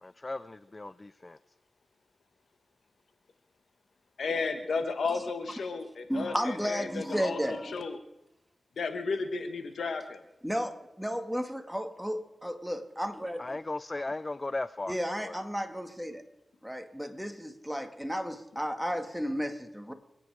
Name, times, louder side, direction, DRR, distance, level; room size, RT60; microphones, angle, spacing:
voice 1, 0.0-1.4 13.4-15.0 15.2-15.4, left 2 dB, 35° left, 16 dB, 0.4 m, -36 dB
voice 2, 4.2-8.0 8.8-10.2, left 4 dB, 85° left, 8 dB, 1.4 m, -33 dB
voice 3, 6.1-7.7 10.4-13.4 14.9-16.2 16.6-19.9, equal, ahead, 7 dB, 1.9 m, -33 dB
26.0 x 9.2 x 4.9 m, 0.93 s
cardioid pair, 45°, 0 cm